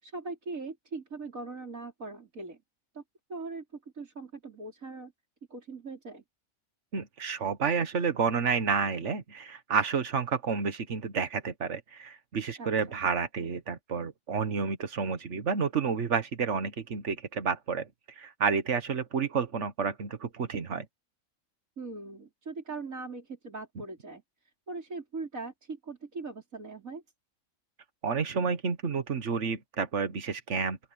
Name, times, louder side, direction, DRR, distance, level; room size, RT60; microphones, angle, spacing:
voice 1, 0.0-2.6 2.9-3.0 3.3-3.6 3.9-5.1 5.5-6.2 12.6-13.0 21.8-24.2 24.7-27.0, right 3 dB, 75° right, 5.1 m, -40 dB
voice 2, 6.9-17.9 18.2-20.8 28.0-30.8, right 5 dB, 60° right, 1.7 m, -30 dB
open air
omnidirectional pair, 1.4 m